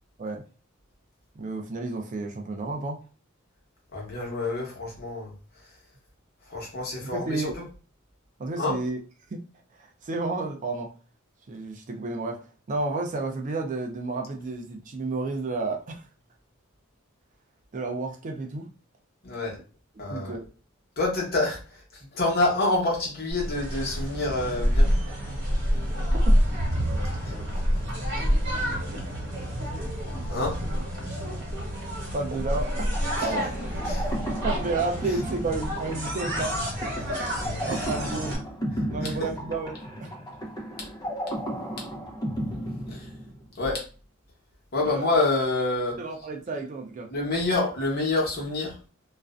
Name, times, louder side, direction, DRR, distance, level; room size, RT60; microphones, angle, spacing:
voice 1, 1.4-3.0 7.0-7.6 8.4-9.0 9.3-9.4 9.8-10.9 11.5-12.4 12.7-16.1 17.7-18.7 20.1-20.5 25.9-26.4 32.1-32.7 33.2-33.5 34.4-36.6 37.6-38.4 38.9-40.1 44.8-45.0 46.0-47.1, right 3 dB, 35° right, 3 dB, 0.4 m, -31 dB
voice 2, 3.9-5.3 6.5-7.6 8.6-8.7 19.2-19.6 20.0-20.4 21.0-24.9 27.2-27.3 30.3-30.5 33.2-33.3 33.8-34.1 37.6-37.9 39.0-39.3 42.9-43.1 43.5-43.8 44.7-46.0 47.1-48.8, left 2 dB, 50° left, -2 dB, 1.0 m, -27 dB
sound 1, 23.3-38.4, equal, 55° right, 1.1 m, -27 dB
sound 2, 32.9-43.6, equal, 20° left, 0.5 m, -34 dB
2.4 x 2.1 x 2.4 m, 0.36 s
head